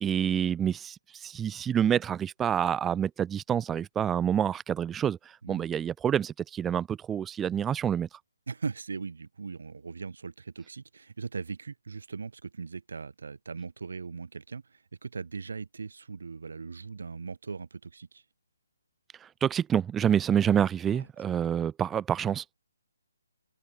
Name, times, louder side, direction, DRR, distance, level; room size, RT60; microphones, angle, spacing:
voice 1, 0.0-5.2 5.5-8.1 19.4-22.5, right 9 dB, 5° right, 0.4 m, -27 dB
voice 2, 8.5-18.2 20.9-21.1, right 5 dB, 70° right, 1.7 m, -39 dB
hypercardioid pair, 175°, 0 cm